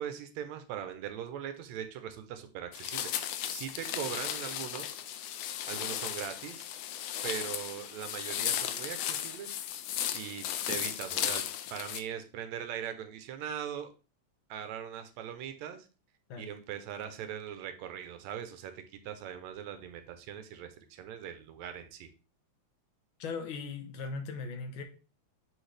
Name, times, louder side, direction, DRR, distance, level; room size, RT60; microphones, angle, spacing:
voice 1, 0.0-4.9 5.7-6.6 7.2-9.5 10.1-13.9 14.5-15.9 16.4-22.1, right 9 dB, 75° right, 2.0 m, -40 dB
sound 1, 2.7-12.0, left 10 dB, 80° left, 1.5 m, -35 dB
voice 2, 23.2-24.8, left 4 dB, 60° left, 1.4 m, -38 dB
9.0 x 4.3 x 3.3 m
omnidirectional pair, 3.3 m